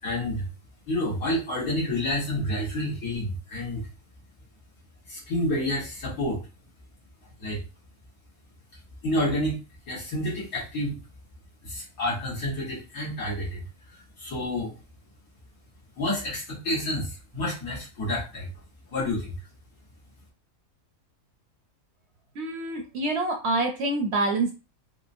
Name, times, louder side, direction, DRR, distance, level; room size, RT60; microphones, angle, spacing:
voice 1, 0.0-0.5 0.9-3.8 5.1-6.4 7.4-7.6 9.0-9.6 9.9-11.0 11.6-13.6 13.9-14.7 16.0-18.5 18.9-19.4, left 1 dB, 75° left, -7 dB, 1.9 m, -29 dB
voice 2, 22.4-24.5, right 2 dB, 60° right, 3 dB, 0.7 m, -26 dB
4.7 x 2.1 x 2.6 m, 0.32 s
omnidirectional pair, 1.5 m